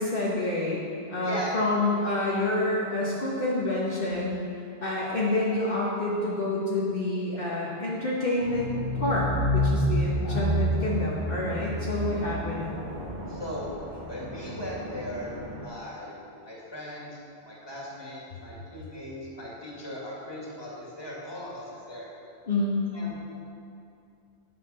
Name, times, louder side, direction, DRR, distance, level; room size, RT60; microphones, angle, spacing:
voice 1, 0.0-4.4 4.8-12.6 22.5-22.8, left 2 dB, 60° left, -6 dB, 1.5 m, -28 dB
voice 2, 1.2-1.6 10.2-10.4 13.3-13.7 14.0-17.1 17.4-22.1 22.9-23.2, left 1 dB, 25° left, -5 dB, 2.3 m, -38 dB
sound 1, 8.4-15.6, equal, 60° right, 1.2 m, -30 dB
9.6 x 7.5 x 5.6 m, 2.5 s
omnidirectional pair, 1.0 m